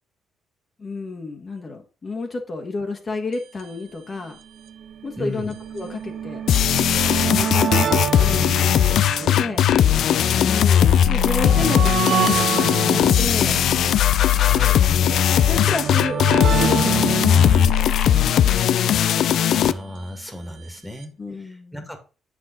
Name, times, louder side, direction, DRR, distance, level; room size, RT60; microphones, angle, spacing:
voice 1, 0.8-4.3 5.0-6.4 7.1-9.7 10.4-13.7 15.1-16.2 16.5-17.6 21.2-21.9, left 3 dB, 40° left, 2 dB, 1.5 m, -31 dB
sound 1, 3.3-3.4 3.6-3.7 4.5-19.8 20.8-20.9 21.0-21.1, right 8 dB, 70° right, 1.0 m, -28 dB
voice 2, 5.2-5.5 11.5-11.7 14.3-14.9 17.3-17.6 19.5-22.0, equal, 5° left, 6 dB, 1.9 m, -34 dB
sound 2, 6.5-19.7, left 10 dB, 70° left, 0.4 m, -18 dB
7.6 x 6.3 x 3.9 m, 0.34 s
cardioid pair, 90°, 0 cm